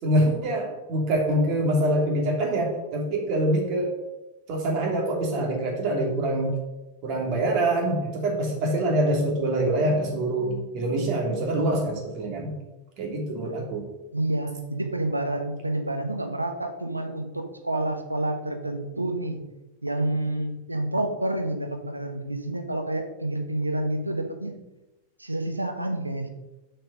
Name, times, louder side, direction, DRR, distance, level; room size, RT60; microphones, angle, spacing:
voice 1, 0.0-4.0 4.5-6.6 7.0-12.5 13.0-13.9, right 1 dB, 40° right, 1 dB, 2.6 m, -25 dB
voice 2, 14.1-19.4 19.8-24.6 25.2-26.3, right 1 dB, 85° right, 6 dB, 1.1 m, -29 dB
7.3 x 5.6 x 6.2 m, 1.0 s
figure-of-eight pair, 90°, 0 cm